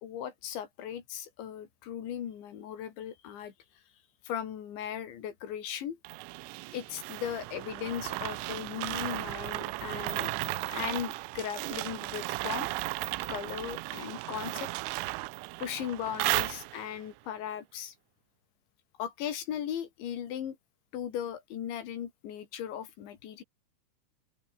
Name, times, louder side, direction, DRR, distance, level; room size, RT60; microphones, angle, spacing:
voice 1, 0.0-3.5 4.2-6.0 6.7-10.3 10.7-12.7 13.3-14.7 15.6-17.9 19.0-20.6 20.9-23.4, left 9 dB, 70° left, 4.8 m, -37 dB
sound 1, 6.1-17.0, right 21 dB, 85° right, 3.2 m, -35 dB
open air
omnidirectional pair, 5.5 m